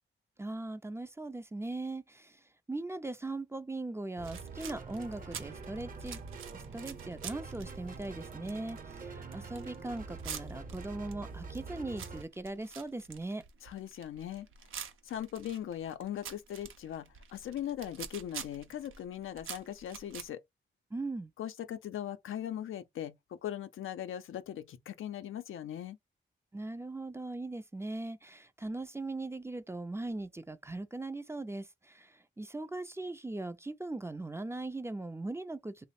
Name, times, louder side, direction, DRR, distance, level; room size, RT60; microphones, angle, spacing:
voice 1, 0.4-2.4 2.7-6.2 6.5-13.4 20.9-21.3 26.5-35.9, right 2 dB, 15° right, 0.4 m, -39 dB
sound 1, 4.2-12.2, right 4 dB, 45° right, 0.8 m, -45 dB
sound 2, 4.2-20.3, right 7 dB, 85° right, 0.6 m, -47 dB
voice 2, 13.6-14.5 15.0-20.4 21.4-26.0, left 11 dB, 90° left, 0.5 m, -39 dB
3.0 x 2.0 x 4.1 m
cardioid pair, 75°, 20 cm